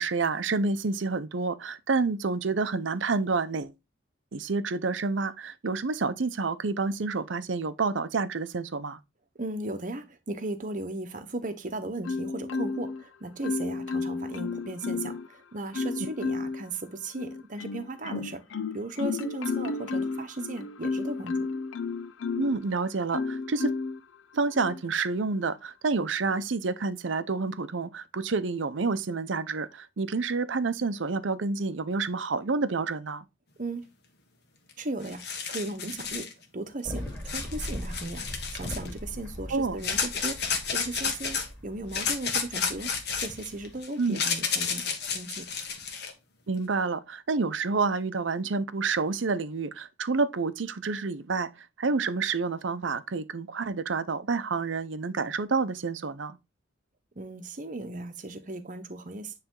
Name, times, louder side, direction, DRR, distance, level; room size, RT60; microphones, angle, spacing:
voice 1, 0.0-3.7 4.3-9.0 22.4-23.7 24.3-33.3 39.5-39.8 44.0-44.3 46.5-51.5 51.8-56.4, right 4 dB, 70° right, 0.7 m, -29 dB
voice 2, 9.4-18.4 18.7-21.5 33.6-33.8 34.8-38.3 38.5-40.3 40.7-42.9 43.2-45.5 57.2-59.3, right 2 dB, 45° right, 1.0 m, -36 dB
Marimba xylophone, 12.0-13.0 13.4-15.3 15.7-16.6 17.2-22.6 23.1-24.0 24.5-24.8, left 4 dB, 80° left, 0.5 m, -32 dB
sound 1, 34.7-34.8 35.0-36.3 37.2-38.9 39.8-41.5 41.9-46.1, left 6 dB, 55° left, 1.3 m, -31 dB
sound 2, 36.8-43.8, left 1 dB, 10° left, 2.6 m, -40 dB
9.8 x 3.3 x 3.8 m
head